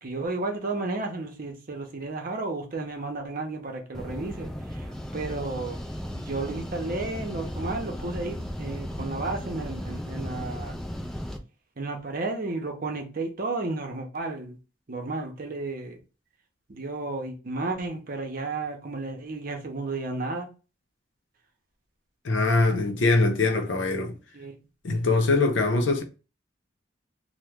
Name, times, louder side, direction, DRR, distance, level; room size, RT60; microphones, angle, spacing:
voice 1, 0.0-4.9 5.1-5.8 6.1-10.8 11.8-14.6 14.9-16.0 16.7-20.5 24.3-24.5, right 3 dB, 50° right, 0.7 m, -32 dB
sound 1, 3.9-11.4, equal, 5° left, 0.4 m, -35 dB
voice 2, 22.2-24.2 24.8-26.0, left 3 dB, 80° left, 0.7 m, -22 dB
3.0 x 2.1 x 3.5 m
head